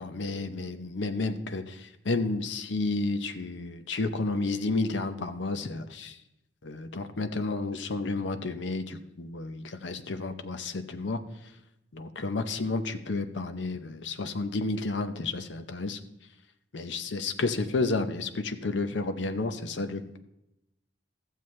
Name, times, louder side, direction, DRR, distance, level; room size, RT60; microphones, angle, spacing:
voice 1, 0.0-6.2 6.6-11.2 11.9-16.0 16.7-20.2, left 3 dB, 65° left, 9 dB, 0.7 m, -31 dB
14.0 x 7.4 x 3.2 m, 0.90 s
head